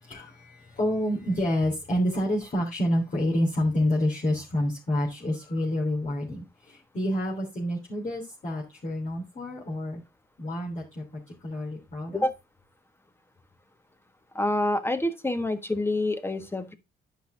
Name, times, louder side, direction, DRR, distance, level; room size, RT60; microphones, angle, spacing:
voice 1, 0.0-10.0 10.4-12.3, left 1 dB, 40° left, 3.3 m, -28 dB
voice 2, 14.3-16.7, left 1 dB, 10° left, 1.4 m, -27 dB
10.5 x 5.7 x 3.8 m
cardioid pair, 90°, 20 cm